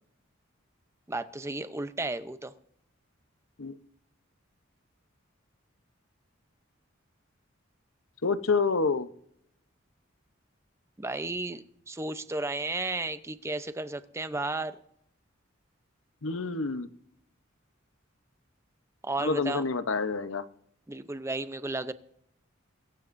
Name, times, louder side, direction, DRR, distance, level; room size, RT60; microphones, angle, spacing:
voice 1, 1.1-2.5 11.0-14.8 19.0-19.6 20.9-21.9, right 2 dB, 15° right, 11 dB, 0.7 m, -33 dB
voice 2, 8.2-9.1 16.2-16.9 19.2-20.4, left 4 dB, 75° left, 12 dB, 0.9 m, -28 dB
23.0 x 14.5 x 2.6 m, 0.73 s
head